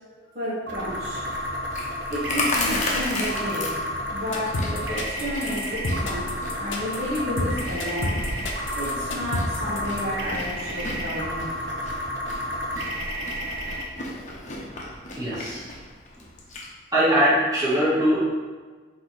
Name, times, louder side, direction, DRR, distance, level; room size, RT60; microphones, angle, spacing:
voice 1, 0.3-1.2 2.1-3.7 4.1-6.3 6.6-8.2 8.8-11.5, left 1 dB, 45° right, -9 dB, 1.0 m, -31 dB
sound 1, 0.7-13.8, equal, 60° right, 0.6 m, -31 dB
Chewing mastication, 1.1-16.7, left 2 dB, 40° left, 0.7 m, -35 dB
sound 2, 4.3-10.0, left 2 dB, 80° left, 0.6 m, -29 dB
voice 2, 15.1-15.7 16.9-18.2, equal, 20° right, -10 dB, 1.4 m, -21 dB
4.1 x 2.7 x 4.5 m, 1.4 s
head